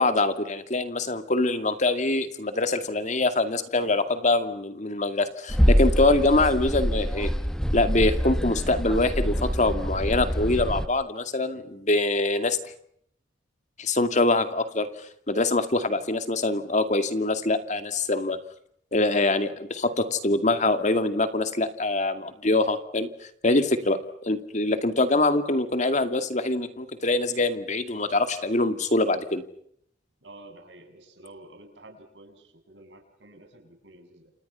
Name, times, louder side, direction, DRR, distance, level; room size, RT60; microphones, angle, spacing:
voice 1, 0.0-7.3 7.7-12.6 13.8-14.9 15.3-18.4 18.9-23.1 23.4-29.4, left 2 dB, 40° left, 9 dB, 2.2 m, -24 dB
sound 1, 5.5-10.9, equal, 5° left, 1.0 m, -25 dB
voice 2, 30.2-34.3, right 2 dB, 80° right, 5 dB, 7.3 m, -50 dB
29.0 x 28.0 x 5.7 m, 0.69 s
head